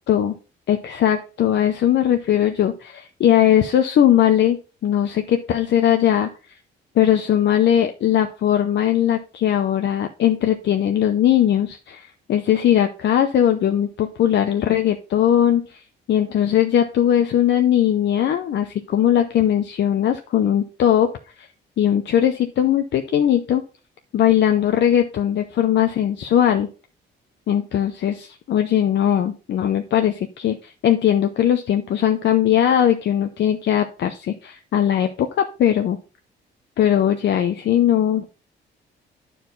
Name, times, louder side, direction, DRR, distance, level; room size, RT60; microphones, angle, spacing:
voice 1, 0.7-6.3 7.0-15.6 16.1-21.1 21.4-21.5 21.8-23.6 24.1-26.7 27.5-35.3 35.6-36.0 36.8-38.3, left 10 dB, 65° left, 7 dB, 0.7 m, -19 dB
10.0 x 4.6 x 3.9 m, 0.35 s
cardioid pair, 90°, 20 cm